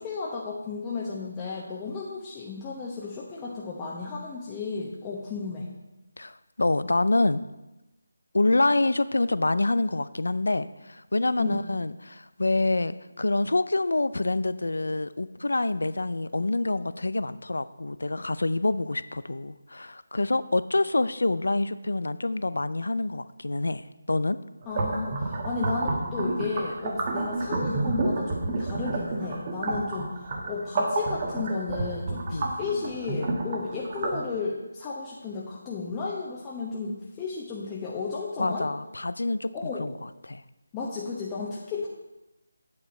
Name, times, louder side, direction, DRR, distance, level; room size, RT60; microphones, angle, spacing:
voice 1, 0.0-5.7 11.4-11.6 24.7-38.7 39.5-39.9 40.7-41.9, left 4 dB, 15° left, -5 dB, 0.8 m, -33 dB
voice 2, 6.2-7.4 8.3-24.4 32.3-32.5 38.4-39.5 39.8-40.4, left 2 dB, 80° left, 14 dB, 0.4 m, -26 dB
sound 1, 24.6-34.2, right 2 dB, 35° right, 1.3 m, -30 dB
8.5 x 6.9 x 4.2 m, 0.98 s
figure-of-eight pair, 165°, 0 cm